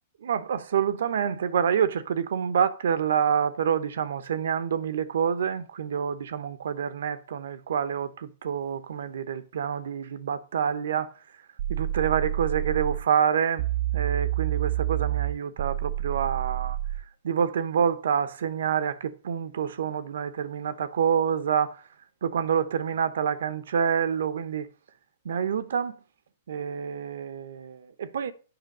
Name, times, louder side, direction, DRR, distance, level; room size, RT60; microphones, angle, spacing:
voice 1, 0.2-11.1 11.7-13.6 13.9-16.8 17.2-21.8 22.2-24.7 25.2-25.9 26.5-28.3, right 8 dB, 75° right, 0.9 m, -27 dB
sound 1, 11.6-13.0 13.6-17.0, right 13 dB, 60° right, 0.4 m, -28 dB
7.9 x 5.7 x 6.6 m
hypercardioid pair, 125°, 0 cm